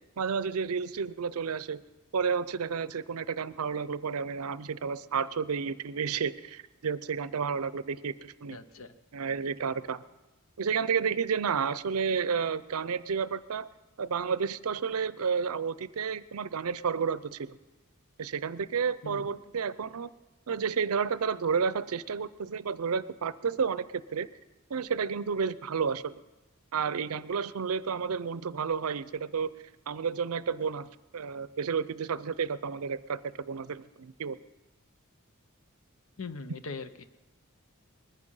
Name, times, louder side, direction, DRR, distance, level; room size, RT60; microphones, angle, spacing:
voice 1, 0.2-1.8 2.1-8.6 9.1-10.0 10.6-13.7 14.0-17.6 18.2-20.1 20.5-23.8 24.1-24.3 24.7-26.1 26.7-29.5 29.9-34.4, right 6 dB, 85° right, 16 dB, 0.5 m, -31 dB
voice 2, 8.5-8.9 19.0-19.4 36.2-37.1, left 4 dB, 65° left, 11 dB, 0.8 m, -41 dB
21.0 x 9.9 x 5.5 m, 1.1 s
head